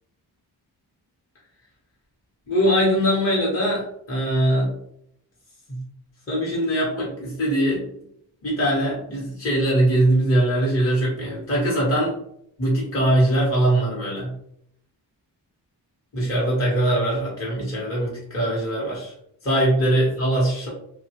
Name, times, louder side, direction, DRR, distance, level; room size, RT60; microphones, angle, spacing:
voice 1, 2.5-4.7 5.7-5.8 6.3-7.9 8.4-12.2 12.6-14.3 16.1-19.1 19.4-20.7, right 1 dB, 30° left, -5 dB, 1.0 m, -22 dB
2.6 x 2.3 x 2.9 m, 0.73 s
cardioid pair, 80°, 43 cm